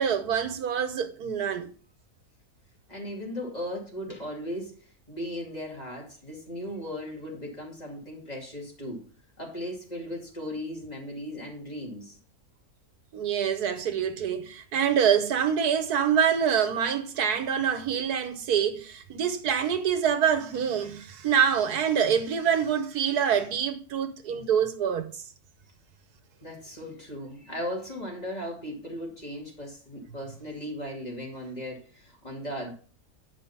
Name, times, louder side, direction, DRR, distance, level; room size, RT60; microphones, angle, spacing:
voice 1, 0.0-1.7 13.1-25.2, right 8 dB, 85° right, 1.6 m, -26 dB
voice 2, 2.9-9.1 9.4-12.2 26.4-32.7, equal, 25° left, 2.7 m, -37 dB
9.4 x 5.0 x 5.5 m
omnidirectional pair, 1.6 m